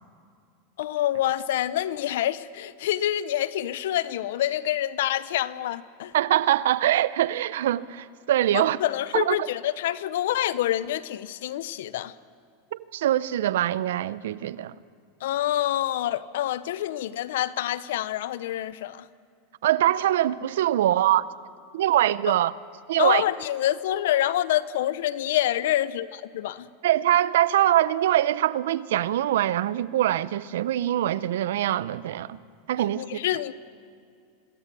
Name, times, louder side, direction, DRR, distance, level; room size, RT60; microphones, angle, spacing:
voice 1, 0.8-6.1 8.5-12.1 15.2-19.1 23.0-26.7 33.0-33.5, left 13 dB, 75° left, 0.8 m, -27 dB
voice 2, 6.1-8.8 9.1-9.4 12.7-14.8 19.6-21.3 21.7-22.5 22.9-23.2 26.8-32.4 32.7-33.2, right 12 dB, 80° right, 0.7 m, -23 dB
26.0 x 20.0 x 6.9 m
supercardioid pair, 120°, 0 cm